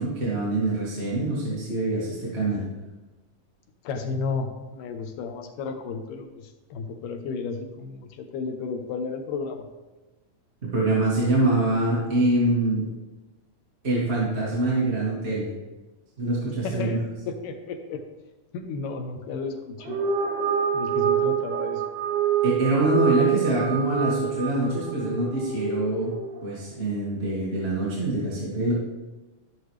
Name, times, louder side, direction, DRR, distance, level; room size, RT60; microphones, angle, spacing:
voice 1, 0.0-2.6 10.7-12.8 13.8-15.5 16.2-16.9 22.4-26.1 26.4-28.7, right 2 dB, 25° right, -7 dB, 1.7 m, -25 dB
voice 2, 3.8-9.6 16.6-18.0 18.5-20.0 20.7-21.8, left 4 dB, 80° left, 5 dB, 2.5 m, -33 dB
sound 1, 19.8-26.4, right 8 dB, 75° right, 2.7 m, -26 dB
14.5 x 6.5 x 3.3 m, 1.1 s
omnidirectional pair, 3.8 m